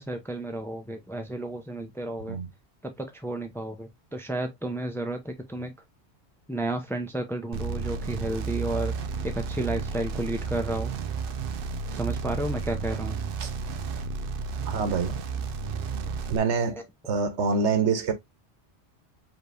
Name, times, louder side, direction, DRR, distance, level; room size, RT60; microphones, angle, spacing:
voice 1, 0.0-2.4 2.8-5.7 6.5-9.0 9.2-10.9 11.9-13.2, right 1 dB, 5° left, 0.7 m, -32 dB
sound 1, 7.5-16.4, right 5 dB, 60° right, 0.7 m, -32 dB
voice 2, 14.7-15.2 16.3-18.1, right 5 dB, 80° right, 1.2 m, -26 dB
5.1 x 3.4 x 2.6 m
omnidirectional pair, 1.2 m